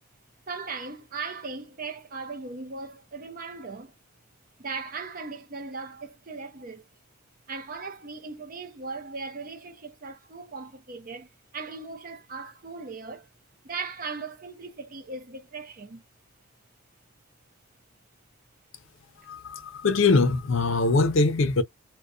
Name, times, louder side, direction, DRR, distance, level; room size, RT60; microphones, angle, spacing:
voice 1, 0.5-3.9 4.6-6.9 7.5-13.3 13.6-16.0, right 4 dB, 40° right, 0.6 m, -38 dB
voice 2, 19.3-21.6, left 3 dB, 65° left, 0.5 m, -22 dB
2.3 x 2.2 x 2.4 m
head